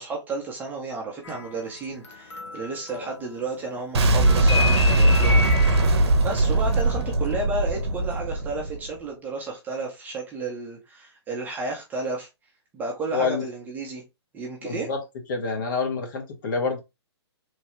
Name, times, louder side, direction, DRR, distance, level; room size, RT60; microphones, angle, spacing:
voice 1, 0.0-5.5 6.2-12.3 12.7-14.0 14.3-14.9, right 3 dB, 10° right, 0.6 m, -32 dB
sound 1, 1.2-3.6 3.9-7.6 7.9-8.2, left 3 dB, 90° left, 0.8 m, -32 dB
Boom, 3.9-8.9, right 1 dB, 65° right, 0.7 m, -20 dB
voice 2, 13.1-13.4 14.6-15.0 15.3-16.8, left 4 dB, 45° left, 1.0 m, -27 dB
3.2 x 2.2 x 3.0 m
hypercardioid pair, 145°, 15 cm